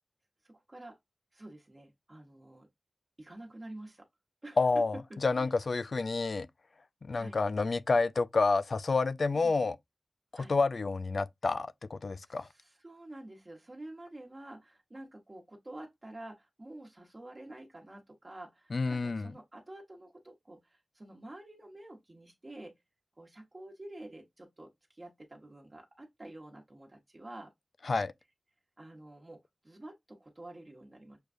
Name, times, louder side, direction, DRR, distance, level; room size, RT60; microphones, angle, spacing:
voice 1, 0.4-1.0 1.3-2.7 3.2-4.1 4.4-4.7 4.9-5.5 7.1-7.4 9.3-9.5 10.3-10.6 12.2-22.8 23.2-27.5 28.8-31.2, right 1 dB, 35° right, 1.1 m, -49 dB
voice 2, 4.6-4.9 5.2-6.5 7.0-9.8 10.3-12.5 18.7-19.3 27.9-28.1, left 3 dB, 70° left, 0.3 m, -29 dB
6.4 x 2.3 x 2.5 m
wide cardioid pair, 65°, 0 cm